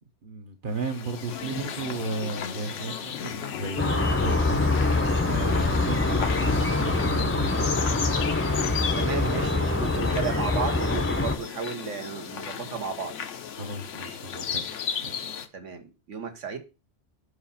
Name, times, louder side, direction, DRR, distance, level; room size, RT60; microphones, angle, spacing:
voice 1, 0.2-7.7 13.6-14.7 15.0-15.3, right 3 dB, 50° right, 0.9 m, -35 dB
sound 1, 0.7-15.5, left 7 dB, 85° left, 1.1 m, -35 dB
sound 2, 1.3-10.4, left 7 dB, 65° left, 0.8 m, -40 dB
sound 3, 3.8-11.4, left 2 dB, 15° left, 0.5 m, -25 dB
voice 2, 8.9-13.1 15.5-16.6, right 5 dB, 85° right, 1.5 m, -33 dB
5.6 x 4.8 x 5.6 m
omnidirectional pair, 1.2 m